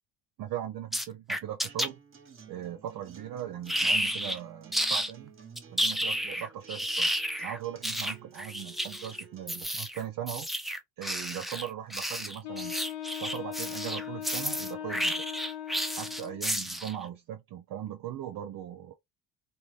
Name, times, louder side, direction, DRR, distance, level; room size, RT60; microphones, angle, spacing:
voice 1, 0.4-2.0 2.5-5.3 5.7-7.1 7.4-10.5 11.0-12.8 13.2-15.2 15.9-18.9, right 11 dB, 65° right, 0.6 m, -39 dB
sound 1, 0.9-1.9 3.7-4.4 4.7-5.1 5.6-17.0, equal, ahead, 0.4 m, -31 dB
Acoustic guitar, 1.7-9.6, right 6 dB, 35° right, 1.0 m, -53 dB
Wind instrument woodwind instrument, 12.4-16.5, left 11 dB, 85° left, 0.6 m, -39 dB
2.5 x 2.3 x 3.1 m
supercardioid pair, 80°, 36 cm